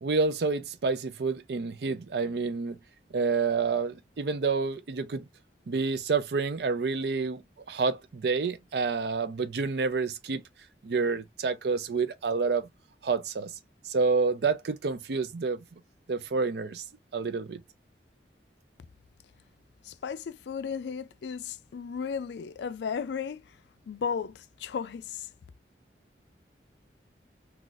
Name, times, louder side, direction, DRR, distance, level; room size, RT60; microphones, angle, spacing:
voice 1, 0.0-2.8 3.1-5.2 5.7-7.4 7.7-10.4 10.8-12.7 13.0-13.5 13.8-15.8 16.1-16.8 17.1-17.6, right 4 dB, 65° right, 0.5 m, -28 dB
voice 2, 19.8-23.6 23.9-25.3, left 6 dB, 75° left, 0.3 m, -35 dB
3.9 x 2.3 x 2.4 m
head